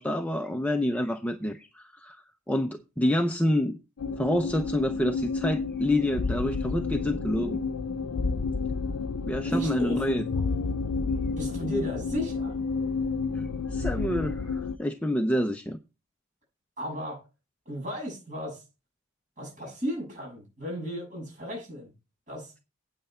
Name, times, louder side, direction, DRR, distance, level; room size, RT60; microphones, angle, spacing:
voice 1, 0.0-3.8 4.2-7.6 9.3-10.2 13.3-15.8, left 1 dB, 5° left, 0.5 m, -28 dB
sound 1, 4.0-14.8, left 4 dB, 85° left, 0.5 m, -30 dB
voice 2, 9.4-10.3 11.4-12.6 16.8-17.2 17.7-18.6 19.4-21.9 22.3-22.5, equal, 35° right, 7.0 m, -34 dB
9.2 x 8.1 x 4.3 m
head